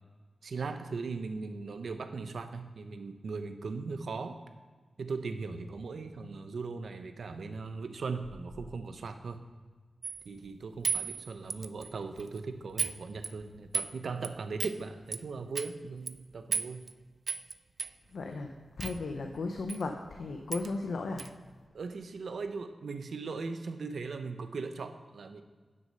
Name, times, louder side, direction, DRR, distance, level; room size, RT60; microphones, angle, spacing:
voice 1, 0.4-4.4 5.0-9.4 10.2-16.8 21.7-25.4, right 4 dB, 70° right, 8 dB, 0.7 m, -39 dB
sound 1, 10.0-10.3 10.8-11.9 12.2-12.4 12.8-13.0 13.2-13.9 14.2-14.3 14.6-14.8 15.1-15.2 15.5-15.7 16.1-16.2 16.5-16.9 17.3-17.5 17.8-17.9 18.8-19.0 19.7-19.8 20.1-20.2 20.5-20.7 21.2-21.3, right 4 dB, 50° right, 0.3 m, -34 dB
voice 2, 18.1-18.5 18.8-21.2, left 3 dB, 80° left, 4 dB, 0.7 m, -35 dB
10.5 x 6.3 x 5.5 m, 1.4 s
wide cardioid pair, 165°, 0 cm